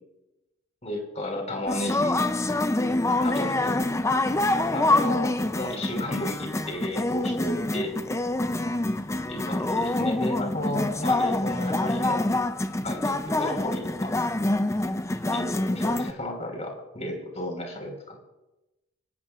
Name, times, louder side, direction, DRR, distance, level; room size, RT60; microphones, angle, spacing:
voice 1, 0.8-2.2 3.2-3.8 4.7-7.9 9.3-12.2 12.8-14.1 15.3-18.2, left 1 dB, 35° left, 2 dB, 4.4 m, -33 dB
sound 1, 1.7-16.1, left 2 dB, 15° left, 0.5 m, -26 dB
27.0 x 19.0 x 2.5 m, 1.0 s
head